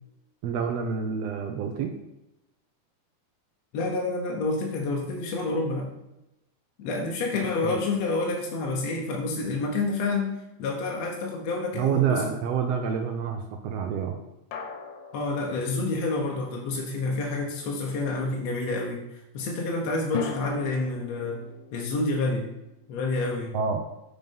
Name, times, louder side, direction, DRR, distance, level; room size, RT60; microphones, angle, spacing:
voice 1, 0.4-1.9 7.6-7.8 11.8-14.2 23.5-23.8, right 7 dB, 90° right, 4 dB, 1.4 m, -27 dB
voice 2, 3.7-5.9 6.8-10.3 10.6-12.3 15.1-21.4 21.7-22.5 22.9-23.6, left 3 dB, 65° left, -1 dB, 2.0 m, -28 dB
sound 1, 7.3-10.7 14.5-16.5 20.1-23.2, left 6 dB, 85° left, 2.5 m, -41 dB
7.8 x 5.4 x 5.3 m, 0.91 s
omnidirectional pair, 3.7 m